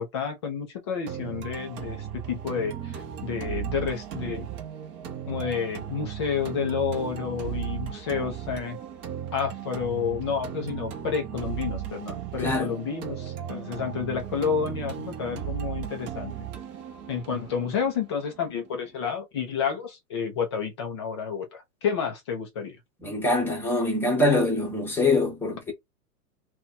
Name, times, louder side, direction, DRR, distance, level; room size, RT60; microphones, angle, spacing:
voice 1, 0.0-4.5 5.3-8.8 9.3-16.3 17.1-22.8, left 6 dB, 20° left, 0.3 m, -30 dB
sound 1, 1.1-19.0, right 10 dB, 25° right, 0.8 m, -36 dB
voice 2, 12.4-12.7 23.0-25.7, left 2 dB, 5° left, 0.9 m, -24 dB
2.8 x 2.2 x 3.8 m
hypercardioid pair, 135°, 47 cm